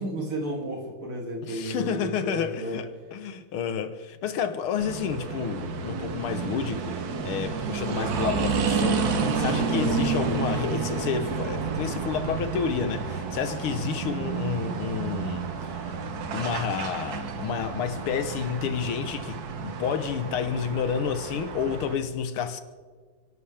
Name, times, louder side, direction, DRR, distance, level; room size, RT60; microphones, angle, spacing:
voice 1, 0.0-2.8 7.9-8.1, right 1 dB, 80° right, 3.7 m, -33 dB
voice 2, 1.4-7.0 7.2-15.4 15.7-15.9 16.3-22.6, left 7 dB, 90° left, 1.9 m, -30 dB
sound 1, 4.8-21.9, right 5 dB, 55° right, 1.4 m, -30 dB
29.5 x 11.5 x 3.5 m
omnidirectional pair, 2.3 m